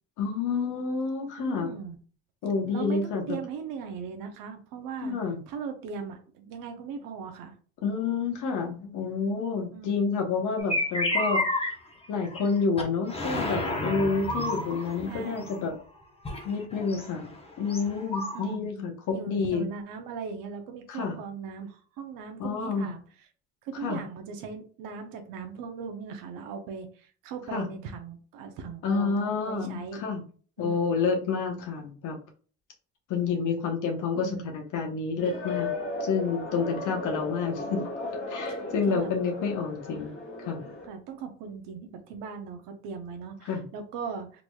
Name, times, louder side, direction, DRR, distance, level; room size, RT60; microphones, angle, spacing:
voice 1, 0.2-1.7 2.4-3.2 5.0-5.4 7.8-11.7 12.1-15.7 16.4-17.3 17.6-19.7 20.9-21.2 22.4-22.9 23.8-24.0 27.5-27.7 28.8-30.2 30.6-32.1 33.1-35.7 36.0-37.8 38.3-40.1 40.4-40.6 43.4-43.6, left 5 dB, 70° left, 2 dB, 1.1 m, -29 dB
voice 2, 1.4-2.0 2.6-5.2 5.5-7.6 9.7-10.1 15.1-15.6 18.3-18.7 19.1-23.3 23.6-30.0 30.6-30.9 34.2-34.5 38.5-39.1 40.9-44.4, right 6 dB, 80° right, 5 dB, 0.8 m, -39 dB
sound 1, 10.6-11.7 12.0-12.5 12.8-12.9 13.1-15.7 16.2-18.6, left 1 dB, 20° left, 0.9 m, -31 dB
sound 2, 35.2-40.9, left 2 dB, 40° left, 1.3 m, -36 dB
3.9 x 3.0 x 2.3 m, 0.40 s
cardioid pair, 95°, 33 cm